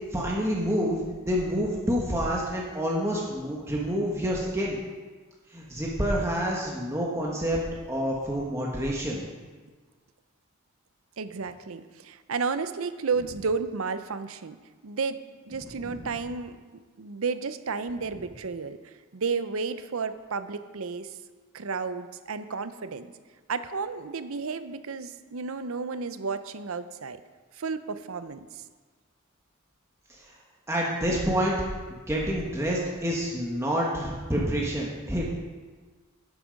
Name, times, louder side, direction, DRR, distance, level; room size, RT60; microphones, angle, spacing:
voice 1, 0.1-4.8 5.5-7.6 7.9-9.2 15.6-15.9 30.1-30.3 30.7-31.5 31.9-35.3, equal, 15° right, -3 dB, 1.3 m, -28 dB
voice 2, 11.2-14.6 14.8-16.6 17.0-21.1 21.5-23.1 23.5-27.2 27.6-28.6, right 4 dB, 65° right, 12 dB, 0.6 m, -32 dB
11.5 x 8.3 x 5.2 m, 1.4 s
head